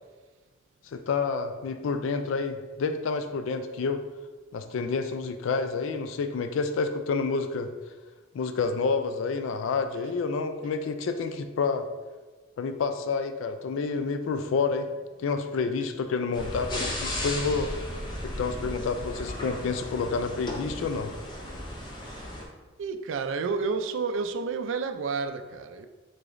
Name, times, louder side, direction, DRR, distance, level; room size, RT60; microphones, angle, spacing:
voice 1, 0.9-4.0 4.5-7.7 8.3-11.9 12.6-14.9 15.2-17.7 18.2-21.1, left 4 dB, 80° left, 0.3 m, -29 dB
sound 1, 16.3-22.4, left 1 dB, 20° left, 0.5 m, -35 dB
voice 2, 22.8-25.9, right 4 dB, 75° right, 0.3 m, -31 dB
4.8 x 3.9 x 2.5 m
head